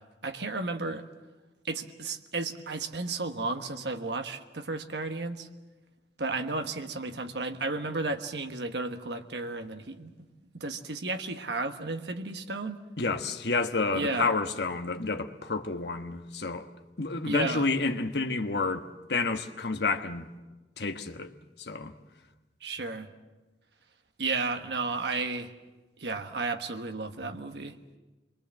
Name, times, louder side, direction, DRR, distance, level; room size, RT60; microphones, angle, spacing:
voice 1, 0.2-1.0 1.6-5.5 6.2-10.3 10.5-12.8 13.9-14.3 17.2-17.7 22.6-23.1 24.2-25.5 26.0-27.8, right 3 dB, 75° right, 1.3 m, -33 dB
voice 2, 13.0-16.7 17.0-18.8 19.1-20.3 20.8-21.3 21.6-21.9, left 3 dB, 70° left, 1.3 m, -29 dB
27.5 x 22.5 x 7.6 m
head